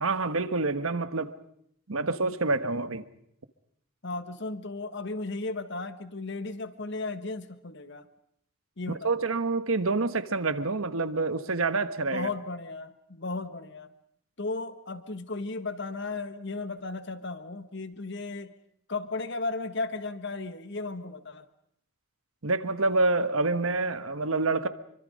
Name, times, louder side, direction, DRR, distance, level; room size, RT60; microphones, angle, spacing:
voice 1, 0.0-1.4 1.9-3.0 9.0-12.3 22.4-24.7, right 3 dB, 80° right, 1.3 m, -27 dB
voice 2, 4.0-8.1 8.8-9.3 12.1-13.9 14.4-18.5 18.9-21.4, left 3 dB, 55° left, 1.4 m, -35 dB
26.5 x 24.0 x 5.3 m
head